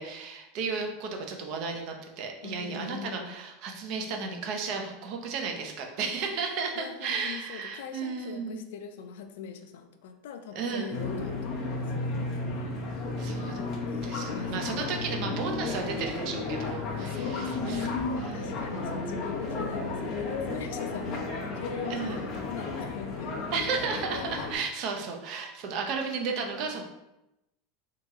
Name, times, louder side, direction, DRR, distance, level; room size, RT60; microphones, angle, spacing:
voice 1, 0.0-8.6 10.6-11.0 13.2-13.6 14.0-17.9 18.2-18.9 21.9-22.3 23.5-26.8, right 5 dB, 45° right, 2 dB, 0.5 m, -34 dB
voice 2, 2.4-3.4 6.8-11.9 14.3-15.0 17.0-18.0 18.3-23.4, left 6 dB, 80° left, 7 dB, 0.3 m, -42 dB
sound 1, 10.9-24.6, left 3 dB, 35° left, 0.6 m, -33 dB
2.9 x 2.9 x 3.5 m, 0.92 s
supercardioid pair, 170°, 0 cm